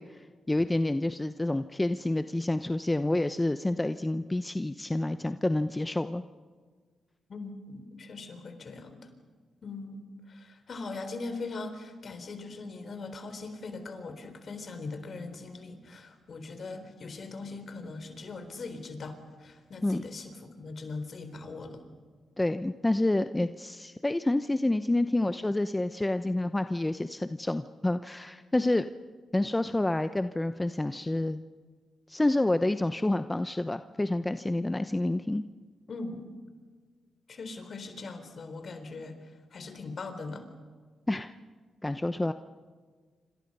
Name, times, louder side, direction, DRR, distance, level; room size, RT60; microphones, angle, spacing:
voice 1, 0.0-6.2 19.8-20.0 22.4-28.8 29.3-31.4 32.1-35.4 41.1-41.3 41.8-42.3, left 1 dB, 15° left, 10 dB, 0.8 m, -28 dB
voice 2, 7.3-9.1 9.6-21.8 35.9-36.3 37.3-40.4, left 3 dB, 55° left, 8 dB, 4.0 m, -41 dB
27.5 x 26.5 x 5.5 m, 1.5 s
supercardioid pair, 60°, 0 cm